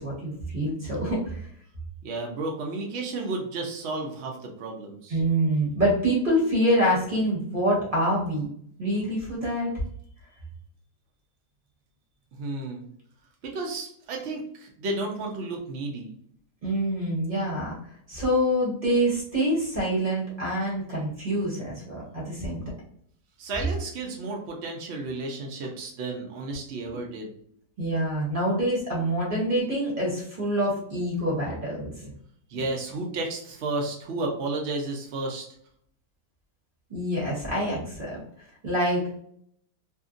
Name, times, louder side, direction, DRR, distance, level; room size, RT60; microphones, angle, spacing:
voice 1, 0.0-1.4 5.1-8.5 8.8-9.7 16.6-17.8 18.1-22.6 27.8-32.1 36.9-38.2 38.6-39.2, equal, 35° right, -5 dB, 1.0 m, -26 dB
voice 2, 2.0-5.2 12.4-12.8 13.4-16.1 23.4-27.3 32.5-35.5, right 2 dB, 80° right, 1 dB, 0.5 m, -32 dB
2.8 x 2.6 x 2.4 m, 0.65 s
omnidirectional pair, 1.9 m